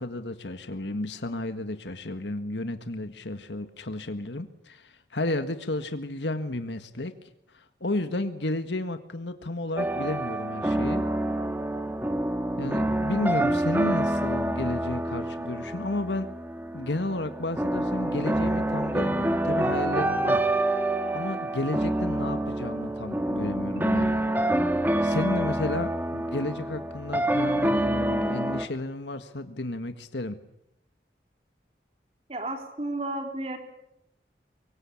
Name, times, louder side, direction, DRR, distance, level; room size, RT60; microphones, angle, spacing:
voice 1, 0.0-7.1 7.5-11.1 12.6-16.3 16.7-20.4 21.1-24.2 25.0-30.4, left 2 dB, 85° left, 9 dB, 1.7 m, -32 dB
sound 1, 9.8-28.7, right 1 dB, 10° right, 1.5 m, -27 dB
voice 2, 32.3-33.6, right 2 dB, 35° right, 5 dB, 4.0 m, -32 dB
24.0 x 23.5 x 8.6 m, 0.81 s
head